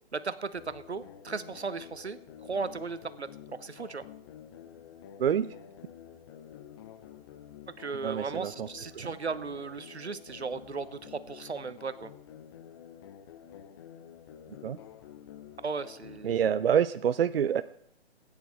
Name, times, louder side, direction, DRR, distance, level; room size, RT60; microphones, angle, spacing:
voice 1, 0.1-4.1 7.8-12.1 15.6-16.5, right 4 dB, 90° right, 14 dB, 1.1 m, -36 dB
sound 1, 0.5-16.5, left 9 dB, 25° left, 0.6 m, -49 dB
voice 2, 8.0-8.7 14.6-14.8 16.2-17.6, right 8 dB, 65° right, 13 dB, 0.5 m, -26 dB
16.5 x 9.6 x 4.7 m, 0.69 s
figure-of-eight pair, 140°, 32 cm